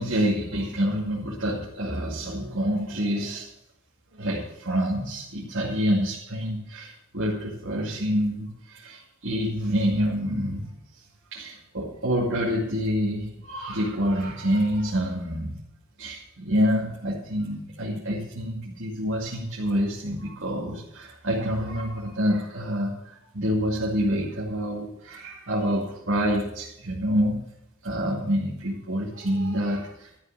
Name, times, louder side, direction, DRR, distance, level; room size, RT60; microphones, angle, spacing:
voice 1, 0.0-3.5 4.1-10.7 11.3-15.6 16.0-27.5 27.8-30.1, equal, 60° right, -5 dB, 2.4 m, -27 dB
13.0 x 6.9 x 7.4 m, 0.80 s
head